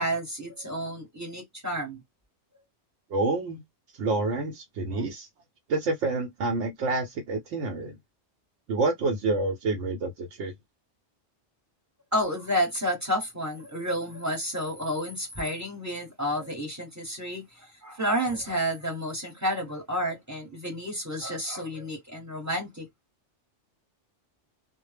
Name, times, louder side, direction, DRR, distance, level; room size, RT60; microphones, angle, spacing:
voice 1, 0.0-2.0 12.1-22.9, equal, 15° right, 0.9 m, -30 dB
voice 2, 3.1-3.6 3.9-5.3 5.7-8.0 8.7-10.5, right 3 dB, 80° right, 0.9 m, -28 dB
2.0 x 2.0 x 3.2 m
omnidirectional pair, 1.2 m